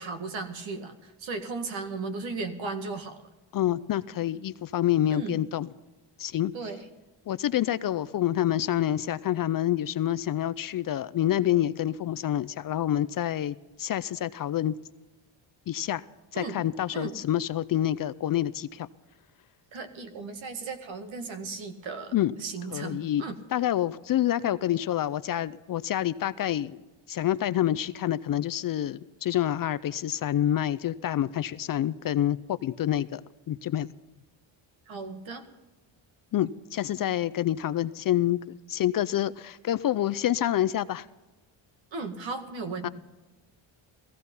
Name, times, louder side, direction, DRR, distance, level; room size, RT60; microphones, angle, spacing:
voice 1, 0.0-3.2 5.1-5.4 6.5-6.8 16.3-16.6 16.9-17.1 19.7-22.1 22.4-23.4 34.9-35.5 41.9-42.9, right 4 dB, 65° right, 2.0 m, -36 dB
voice 2, 3.5-5.7 6.2-6.5 7.3-14.7 15.7-16.0 16.3-18.9 22.1-22.3 22.7-23.2 23.5-26.8 27.1-33.2 33.5-33.9 36.3-41.1 42.8-42.9, left 12 dB, 45° left, 0.5 m, -27 dB
16.5 x 15.5 x 5.5 m
cardioid pair, 115°, 50 cm